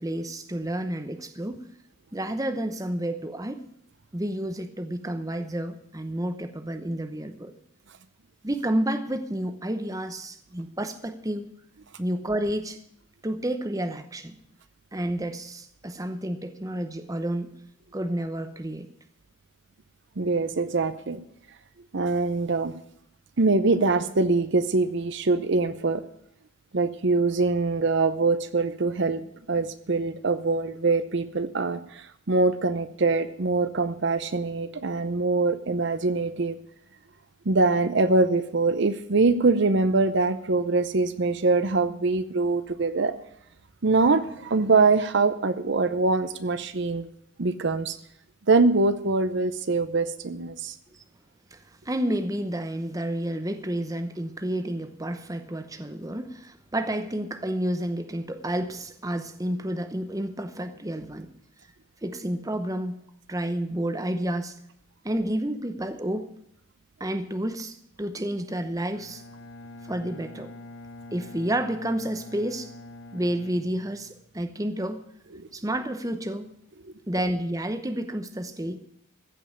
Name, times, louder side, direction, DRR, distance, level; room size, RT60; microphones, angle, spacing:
voice 1, 0.0-1.6 2.1-3.7 4.1-7.5 8.4-11.5 12.0-12.8 13.2-14.4 14.9-17.5 17.9-18.9 50.9-51.0 51.5-51.6 51.8-61.3 62.0-63.0 63.3-64.6 65.0-66.3 67.0-69.2 69.9-70.5 71.1-72.7 73.1-75.0 75.5-76.5 77.1-78.8, right 1 dB, 15° right, 9 dB, 0.8 m, -30 dB
voice 2, 20.2-21.2 21.9-22.7 23.4-26.0 26.7-29.2 29.5-36.6 37.5-43.2 43.8-47.1 47.4-48.0 48.5-50.7 75.4-75.5 76.8-76.9, right 3 dB, 55° right, 12 dB, 0.6 m, -23 dB
Bowed string instrument, 68.9-74.4, left 2 dB, 55° left, 1.3 m, -45 dB
15.5 x 5.5 x 9.9 m, 0.71 s
head